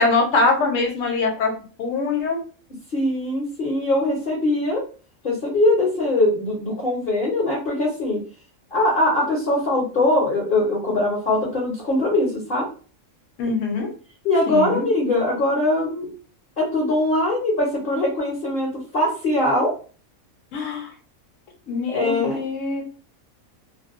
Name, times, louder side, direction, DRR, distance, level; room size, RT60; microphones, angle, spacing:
voice 1, 0.0-1.5 1.8-2.4 13.4-13.9 14.5-14.9 20.5-20.9 21.7-22.8, left 3 dB, 65° left, 2 dB, 1.1 m, -23 dB
voice 2, 2.9-4.8 5.2-8.2 8.7-12.7 14.2-16.1 16.6-19.7 21.9-22.4, left 1 dB, 50° left, -3 dB, 0.8 m, -21 dB
2.5 x 2.1 x 2.4 m, 0.38 s
omnidirectional pair, 1.5 m